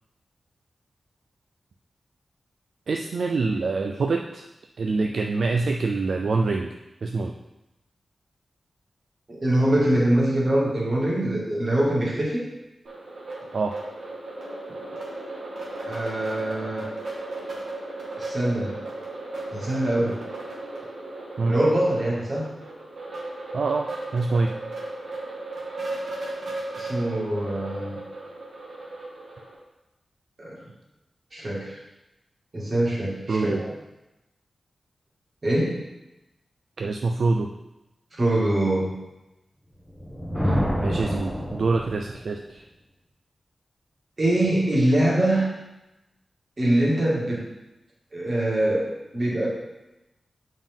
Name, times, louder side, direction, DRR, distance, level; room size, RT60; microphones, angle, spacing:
voice 1, 2.9-4.5 4.8-6.7 7.0-7.3 13.5-13.8 21.4-21.5 23.5-24.5 33.3-33.6 36.8-37.5 40.4-42.6, right 3 dB, 60° right, 3 dB, 0.4 m, -25 dB
voice 2, 9.3-12.4 15.9-16.9 18.2-18.8 19.5-20.2 21.4-22.5 26.7-28.0 30.4-30.6 31.3-31.8 32.5-33.7 35.4-35.8 38.2-38.9 44.2-45.5 46.6-47.4 48.1-49.5, right 1 dB, 35° right, -5 dB, 2.0 m, -23 dB
sound 1, 12.8-29.5, right 2 dB, 90° right, 2.1 m, -36 dB
Thunder, 39.9-42.3, equal, 5° right, 1.2 m, -27 dB
7.2 x 5.6 x 3.6 m, 0.97 s
wide cardioid pair, 160°, 0 cm